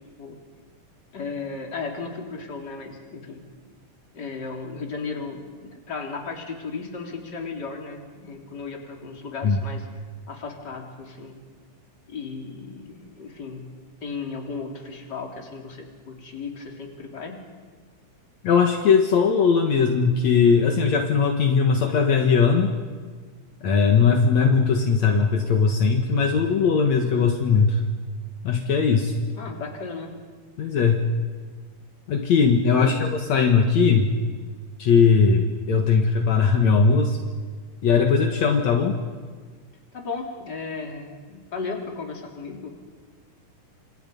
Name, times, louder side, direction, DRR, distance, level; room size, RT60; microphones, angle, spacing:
voice 1, 1.1-3.4 4.1-9.9 10.3-11.4 12.1-13.7 14.0-17.4 29.4-30.1 32.8-33.1 39.9-42.7, left 4 dB, 35° left, 1 dB, 3.8 m, -35 dB
voice 2, 18.4-22.7 23.6-27.8 28.4-29.1 30.6-31.0 32.1-34.1 34.8-37.2 37.8-39.0, left 5 dB, 65° left, 3 dB, 2.8 m, -19 dB
29.5 x 27.5 x 5.4 m, 1.5 s
omnidirectional pair, 3.4 m